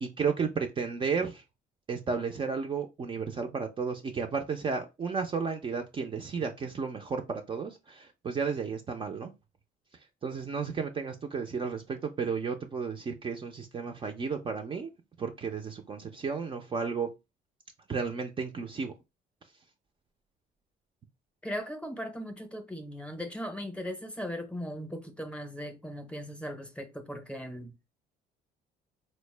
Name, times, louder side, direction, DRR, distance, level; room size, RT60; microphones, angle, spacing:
voice 1, 0.0-1.4 1.9-9.3 9.9-14.9 15.2-17.1 17.9-18.9, right 5 dB, 30° right, 0.4 m, -33 dB
voice 2, 21.4-27.7, equal, 5° left, 0.7 m, -38 dB
4.1 x 2.1 x 3.2 m
cardioid pair, 110°, 17 cm